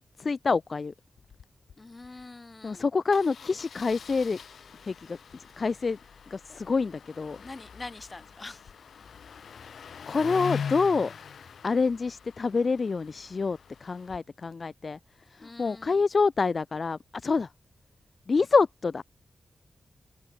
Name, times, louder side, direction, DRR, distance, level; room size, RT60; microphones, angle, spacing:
voice 1, 0.2-0.9 2.6-4.4 4.8-5.2 5.6-6.0 6.3-7.4 10.1-11.1 11.6-15.0 15.3-17.5 18.3-19.0, left 4 dB, 40° left, 0.3 m, -27 dB
Engine starting, 1.2-1.4 1.7-1.8 2.0-2.2 3.1-14.2, left 7 dB, 75° left, 2.3 m, -42 dB
voice 2, 1.8-2.9 7.4-8.6 15.4-16.0, left 3 dB, 25° left, 1.7 m, -44 dB
wide cardioid pair, 160°, 0 cm